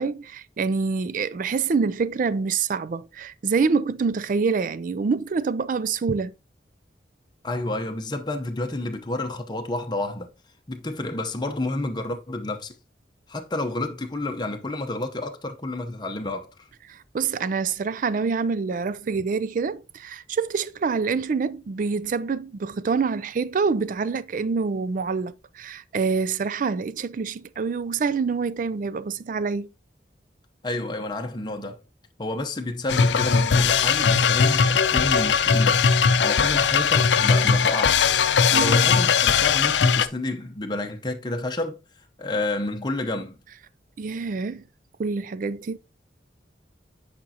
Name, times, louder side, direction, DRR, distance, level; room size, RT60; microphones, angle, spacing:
voice 1, 0.0-6.3 16.9-29.7 38.5-38.9 44.0-44.6 45.0-45.8, right 5 dB, 45° right, 0.4 m, -26 dB
voice 2, 7.4-10.3 10.7-12.7 13.3-16.7 30.6-31.8 32.2-35.8 36.2-38.1 38.5-41.8 42.2-43.4, left 2 dB, 25° left, 0.8 m, -30 dB
sound 1, 32.9-40.1, left 6 dB, 80° left, 0.5 m, -19 dB
8.6 x 5.1 x 2.8 m
head